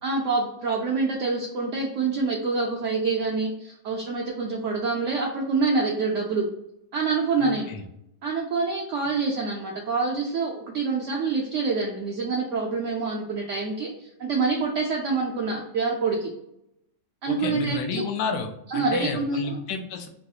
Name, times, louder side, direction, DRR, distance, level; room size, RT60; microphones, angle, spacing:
voice 1, 0.0-6.5 6.9-7.7 8.2-16.3 17.2-18.0 18.7-19.6, right 4 dB, 75° right, -1 dB, 0.7 m, -26 dB
voice 2, 7.4-7.8 17.3-20.1, left 5 dB, 90° left, 5 dB, 1.2 m, -31 dB
3.3 x 2.3 x 2.7 m, 0.81 s
omnidirectional pair, 1.8 m